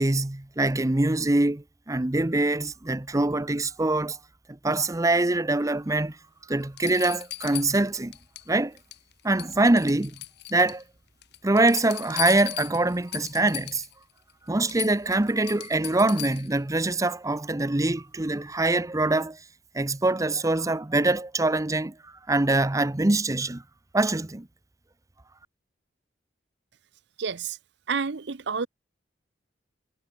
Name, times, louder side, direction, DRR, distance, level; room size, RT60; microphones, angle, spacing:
voice 1, 0.0-4.2 4.6-6.2 6.5-8.1 8.5-8.8 9.2-10.2 10.5-10.8 11.4-13.8 14.5-19.4 19.7-23.6 23.9-24.5, right 2 dB, 20° right, 0.7 m, -24 dB
sound 1, 6.1-6.2 6.8-8.5 8.8-9.1 9.4-10.8 11.2-13.9 14.3-14.4 14.7-16.6 18.3-18.4, left 15 dB, 65° left, 0.9 m, -37 dB
voice 2, 27.2-27.6 27.9-28.7, right 5 dB, 65° right, 0.8 m, -29 dB
head